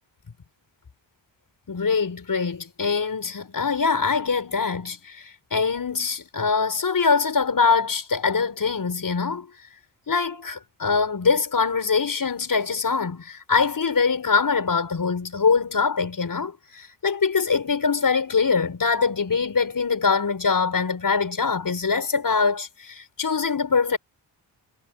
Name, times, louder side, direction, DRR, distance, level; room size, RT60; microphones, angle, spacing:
voice 1, 1.7-9.5 10.1-24.0, left 5 dB, 45° left, 6.8 m, -23 dB
cardioid pair, 80°, 45 cm